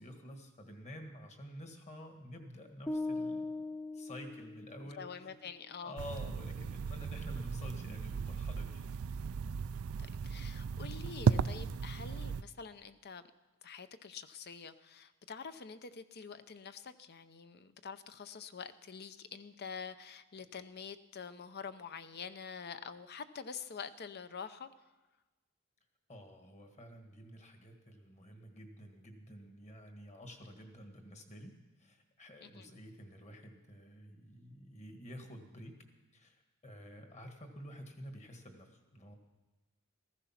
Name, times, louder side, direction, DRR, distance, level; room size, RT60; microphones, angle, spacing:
voice 1, 0.0-3.6 3.9-5.3 5.8-8.9 26.1-31.5 31.8-35.7 36.1-39.2, equal, 35° left, 4 dB, 1.8 m, -50 dB
sound 1, 2.9-5.1, left 2 dB, 5° left, 0.4 m, -39 dB
voice 2, 5.0-6.0 10.2-13.2 13.6-24.7 32.4-32.7, left 6 dB, 50° left, 12 dB, 0.7 m, -46 dB
sound 2, 6.0-12.4, right 6 dB, 85° right, 0.4 m, -35 dB
15.0 x 14.5 x 5.8 m, 1.1 s
head